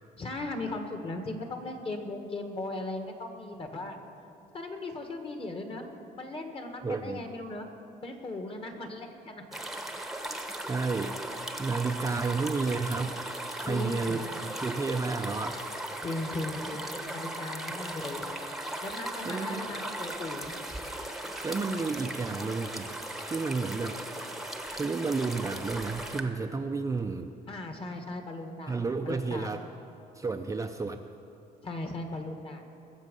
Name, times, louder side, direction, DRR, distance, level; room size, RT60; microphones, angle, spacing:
voice 1, 0.2-4.0 4.5-5.9 6.1-7.7 8.0-9.6 13.6-14.2 16.0-18.2 18.8-20.5 27.5-28.8 29.0-29.5 31.6-32.6, left 2 dB, 35° left, 5 dB, 1.7 m, -37 dB
voice 2, 6.8-7.2 10.7-11.2 11.6-13.2 13.6-15.6 17.7-17.8 19.3-19.7 21.4-23.0 23.2-24.0 24.7-27.3 28.7-29.6 30.2-31.0, right 4 dB, 20° right, 5 dB, 0.5 m, -31 dB
sound 1, 9.5-26.2, right 1 dB, ahead, 1.0 m, -37 dB
21.0 x 7.2 x 5.4 m, 2.8 s
cardioid pair, 110°, 17 cm